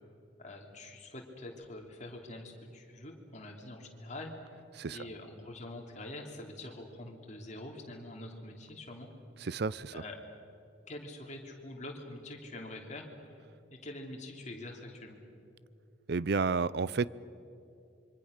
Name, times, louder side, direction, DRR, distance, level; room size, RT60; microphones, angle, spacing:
voice 1, 0.4-4.3 4.9-9.1 9.9-10.2 10.9-13.1 13.7-15.2, left 1 dB, 35° left, 1 dB, 3.1 m, -45 dB
voice 2, 9.4-9.9 16.1-17.1, right 4 dB, 55° right, 20 dB, 0.5 m, -31 dB
26.5 x 24.0 x 6.6 m, 2.8 s
head